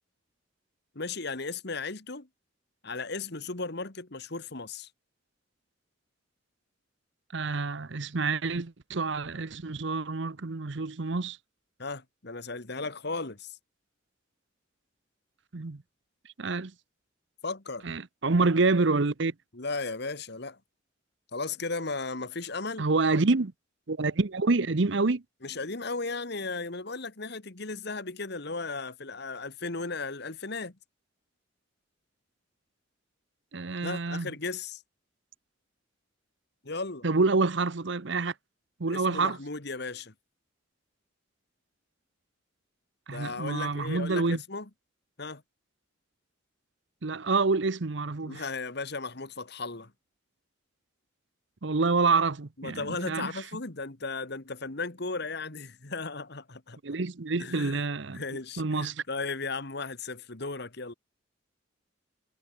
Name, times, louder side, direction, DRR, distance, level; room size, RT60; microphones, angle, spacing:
voice 1, 1.0-2.3 2.8-4.9 11.8-13.6 17.4-17.8 19.5-20.6 21.3-22.9 25.4-30.8 33.8-34.8 36.6-37.1 38.9-40.1 43.1-44.7 45.2-45.4 48.2-49.9 52.6-56.8 57.4-57.8 58.1-60.9, left 3 dB, 55° left, 1.8 m, -36 dB
voice 2, 7.3-11.4 15.5-15.8 16.4-16.7 17.8-19.3 22.8-23.5 23.9-25.2 33.5-34.3 37.0-38.3 38.8-39.4 43.1-44.4 47.0-48.4 51.6-53.3 56.8-58.2 58.6-59.0, right 3 dB, 60° right, 0.8 m, -27 dB
head